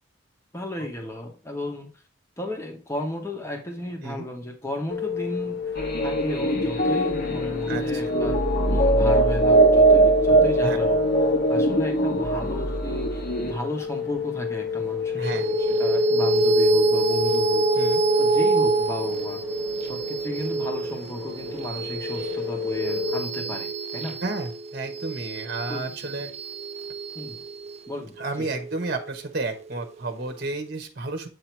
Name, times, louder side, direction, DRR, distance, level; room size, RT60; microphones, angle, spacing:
voice 1, 0.5-1.9 2.4-5.8 6.0-8.4 8.7-11.0 11.5-17.8 18.2-19.4 19.8-24.2 25.7-25.9 27.1-27.4 27.9-28.5, left 1 dB, 15° left, 2 dB, 1.0 m, -34 dB
sound 1, 4.9-23.2, left 7 dB, 65° left, 0.9 m, -30 dB
sound 2, 5.7-13.5, right 2 dB, 45° left, 1.1 m, -21 dB
voice 2, 7.7-8.2 10.6-10.8 15.1-15.4 17.8-18.0 24.2-26.3 28.2-31.3, right 2 dB, 50° right, 5 dB, 0.9 m, -31 dB
sound 3, 15.2-30.0, right 3 dB, 30° right, 0.3 m, -26 dB
8.0 x 2.8 x 4.4 m, 0.38 s
head